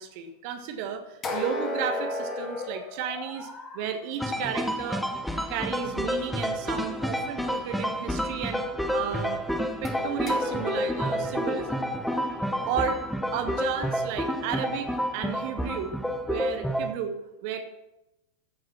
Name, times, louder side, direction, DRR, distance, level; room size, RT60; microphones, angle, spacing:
voice 1, 0.0-3.5 3.7-5.1 5.5-8.6 8.9-9.4 9.8-11.9 12.6-13.0 13.3-15.9 16.3-17.8, right 8 dB, 45° right, 6 dB, 1.5 m, -33 dB
sound 1, 1.2-3.9 9.9-13.9, left 2 dB, 25° left, 2.2 m, -36 dB
sound 2, 4.2-16.9, equal, ahead, 1.0 m, -29 dB
15.0 x 6.5 x 6.0 m, 0.92 s
figure-of-eight pair, 90°, 0 cm